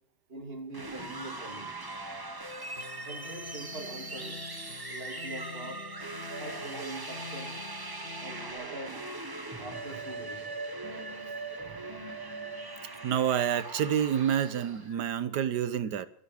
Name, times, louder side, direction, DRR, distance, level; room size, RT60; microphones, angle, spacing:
voice 1, 0.3-1.7 3.0-4.5 4.9-5.8 6.4-7.6 8.2-9.0 9.6-10.5 14.9-15.0, right 2 dB, 35° right, 3.1 m, -43 dB
sound 1, 0.7-14.9, right 2 dB, 15° right, 0.9 m, -40 dB
sound 2, 2.8-8.5, left 5 dB, 35° left, 2.3 m, -46 dB
voice 2, 10.5-11.2 11.5-11.8 13.0-16.1, right 9 dB, 90° right, 1.5 m, -29 dB
24.0 x 8.5 x 6.4 m
omnidirectional pair, 1.8 m